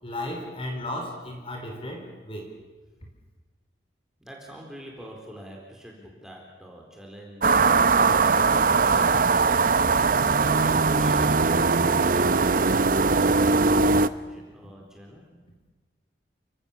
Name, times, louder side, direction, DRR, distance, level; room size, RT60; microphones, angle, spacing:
voice 1, 0.0-2.5, left 1 dB, 30° left, 2 dB, 4.5 m, -34 dB
voice 2, 4.2-8.2 10.0-15.2, equal, 5° right, -1 dB, 4.0 m, -44 dB
sound 1, 7.4-14.1, right 4 dB, 50° right, 0.7 m, -20 dB
29.5 x 17.5 x 7.2 m, 1.3 s
head